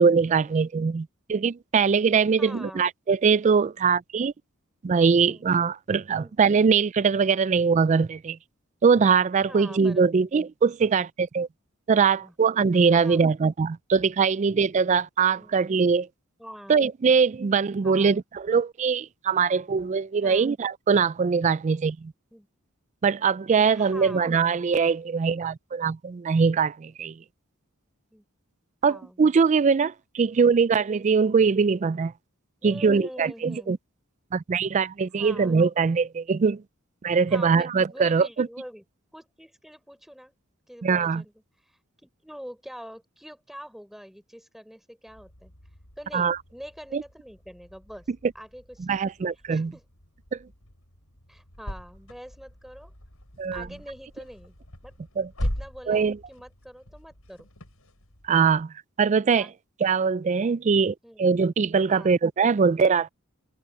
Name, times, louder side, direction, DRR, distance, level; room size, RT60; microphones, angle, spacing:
voice 1, 0.0-4.3 4.8-8.4 8.8-11.5 11.9-16.1 16.7-22.1 23.0-27.1 28.8-32.1 32.6-33.8 34.3-36.6 37.0-38.5 40.8-41.2 46.1-46.4 46.9-47.0 48.8-49.7 50.3-50.4 53.4-53.7 55.2-55.3 55.9-56.2 58.3-59.5 59.8-63.1, right 5 dB, 35° right, 0.3 m, -22 dB
voice 2, 2.4-2.9 5.1-5.5 6.2-6.3 9.5-10.3 11.9-12.3 12.9-13.2 15.4-15.6 16.4-16.8 17.8-18.1 20.2-20.5 22.3-22.5 23.7-24.3 28.1-28.2 28.9-29.2 32.6-33.7 35.2-35.6 37.3-38.8 39.1-40.3 40.7-41.3 42.0-45.5 46.0-48.1 48.3-49.0 49.5-49.8 51.3-52.9 53.5-54.5 54.8-54.9 55.4-57.5 59.3-59.5 61.0-61.3 61.9-62.1, equal, ahead, 4.0 m, -44 dB
sound 1, 45.1-58.6, equal, 80° left, 6.8 m, -40 dB
head